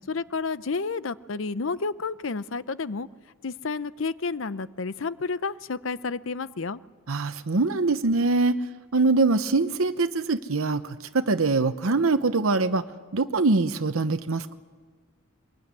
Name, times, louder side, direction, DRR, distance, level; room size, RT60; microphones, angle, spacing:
voice 1, 0.1-3.1 3.4-6.8, left 4 dB, 70° left, 16 dB, 0.7 m, -30 dB
voice 2, 7.1-8.6 8.9-12.8 13.1-14.6, right 3 dB, 85° right, 9 dB, 0.9 m, -23 dB
23.0 x 22.5 x 9.7 m, 1.5 s
head